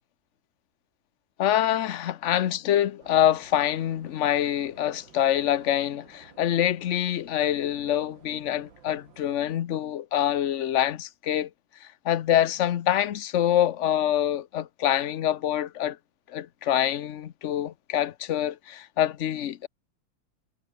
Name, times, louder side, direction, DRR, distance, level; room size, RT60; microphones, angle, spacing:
voice 1, 1.4-11.5 11.8-16.0 16.3-19.7, left 11 dB, 60° left, 0.8 m, -25 dB
sound 1, 3.0-9.5, right 6 dB, 80° right, 3.0 m, -55 dB
omnidirectional pair, 2.1 m